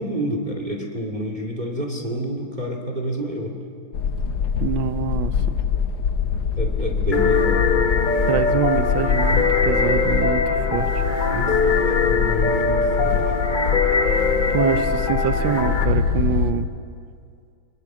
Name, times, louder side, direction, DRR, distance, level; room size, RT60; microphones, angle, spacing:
voice 1, 0.0-3.6 6.6-7.6 11.3-13.4, equal, 20° right, 2 dB, 2.4 m, -29 dB
sound 1, 3.9-16.5, left 7 dB, 65° left, 1.7 m, -24 dB
voice 2, 4.6-5.3 8.3-10.9 14.5-16.7, right 8 dB, 75° right, 11 dB, 1.7 m, -25 dB
sound 2, 7.1-15.9, left 4 dB, 30° left, 1.2 m, -22 dB
24.5 x 20.5 x 7.3 m, 2.3 s
omnidirectional pair, 2.2 m